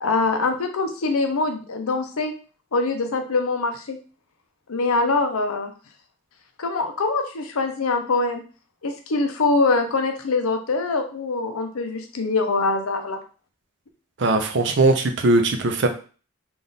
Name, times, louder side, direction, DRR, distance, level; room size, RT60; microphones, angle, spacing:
voice 1, 0.0-2.3 2.7-4.0 4.7-5.7 6.6-8.4 8.8-13.2, left 3 dB, 90° left, 5 dB, 0.7 m, -23 dB
voice 2, 14.2-15.9, right 2 dB, 55° right, 5 dB, 0.6 m, -19 dB
3.5 x 2.5 x 4.0 m, 0.37 s
head